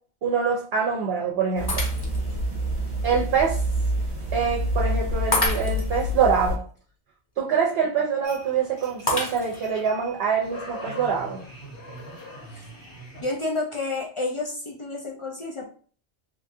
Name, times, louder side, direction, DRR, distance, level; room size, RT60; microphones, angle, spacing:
voice 1, 0.2-1.8 3.0-3.6 4.3-6.6 7.4-11.4, right 6 dB, 65° right, -2 dB, 0.8 m, -25 dB
sound 1, 1.6-6.6, equal, 30° right, 0.8 m, -27 dB
Shatter, 1.7-2.4 3.0-3.1 5.3-6.0 9.1-9.8, left 2 dB, 25° left, 0.7 m, -27 dB
sound 2, 8.2-13.2, right 1 dB, 75° left, 1.5 m, -42 dB
voice 2, 13.2-15.7, left 2 dB, 55° left, -1 dB, 0.3 m, -30 dB
3.1 x 2.5 x 2.6 m, 0.43 s
omnidirectional pair, 1.1 m